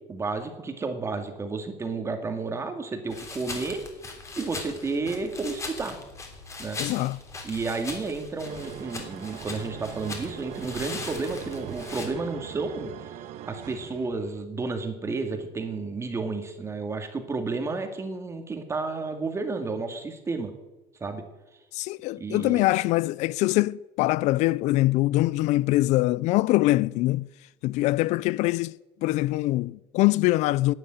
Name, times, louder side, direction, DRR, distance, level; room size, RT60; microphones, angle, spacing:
voice 1, 0.1-3.8 4.4-6.0 6.6-6.8 7.4-13.1 13.4-20.5 21.0-21.2 22.2-22.7, right 3 dB, 20° right, 2.1 m, -31 dB
sound 1, 3.1-12.1, left 3 dB, 25° left, 3.1 m, -40 dB
voice 2, 6.8-7.2 21.7-27.3 27.6-30.7, left 18 dB, 65° left, 0.4 m, -23 dB
sound 2, 8.4-14.4, right 12 dB, 60° right, 0.8 m, -41 dB
12.0 x 9.1 x 9.3 m
cardioid pair, 130°, 13 cm